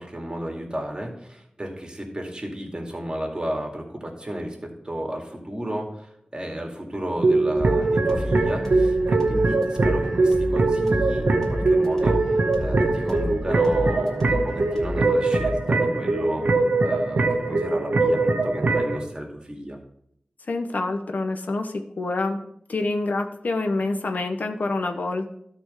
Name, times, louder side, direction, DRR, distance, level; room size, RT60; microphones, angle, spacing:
voice 1, 0.0-12.2 12.6-16.4 16.8-19.8, right 1 dB, 30° right, 1 dB, 2.3 m, -33 dB
sound 1, 7.2-19.0, right 3 dB, 90° right, 1.0 m, -22 dB
sound 2, 7.5-15.8, left 1 dB, 15° left, 3.0 m, -32 dB
voice 2, 20.5-22.4 22.7-25.3, left 2 dB, 75° left, 5 dB, 0.9 m, -27 dB
12.5 x 4.4 x 5.5 m, 0.72 s
wide cardioid pair, 55°, 3 cm